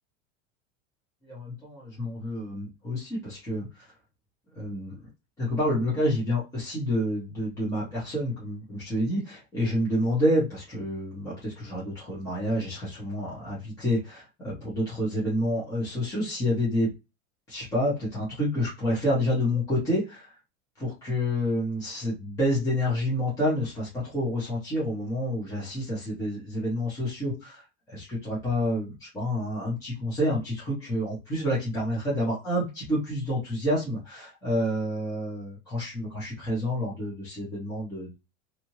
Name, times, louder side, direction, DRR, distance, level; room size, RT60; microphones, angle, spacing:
voice 1, 1.2-3.9 4.5-5.0 5.4-16.9 17.5-20.3 20.8-38.1, equal, 10° left, -8 dB, 0.9 m, -28 dB
2.8 x 2.5 x 2.9 m, 0.26 s
supercardioid pair, 175°, 38 cm